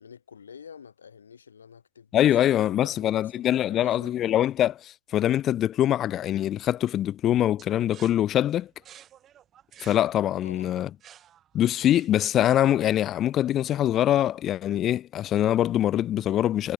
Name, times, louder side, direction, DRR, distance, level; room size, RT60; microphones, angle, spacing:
voice 1, 0.0-4.3 10.4-10.8, left 7 dB, 80° left, 7.0 m, -48 dB
voice 2, 2.1-8.7 9.8-10.9 11.5-16.7, left 12 dB, 20° left, 0.5 m, -23 dB
sound 1, 7.6-12.4, right 10 dB, 20° right, 2.3 m, -52 dB
hypercardioid pair, 140°, 0 cm